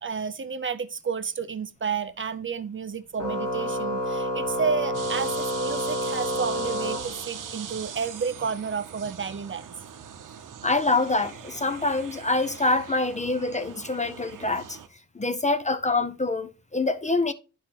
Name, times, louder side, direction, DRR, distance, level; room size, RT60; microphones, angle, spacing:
voice 1, 0.0-9.7, right 6 dB, 40° right, 0.6 m, -31 dB
Organ, 3.2-7.7, equal, 85° left, 1.4 m, -29 dB
sound 1, 4.9-14.9, right 8 dB, 85° right, 0.7 m, -41 dB
voice 2, 10.6-14.8 15.2-17.3, left 2 dB, 25° left, 0.5 m, -25 dB
10.5 x 4.6 x 2.9 m
cardioid pair, 70°, 31 cm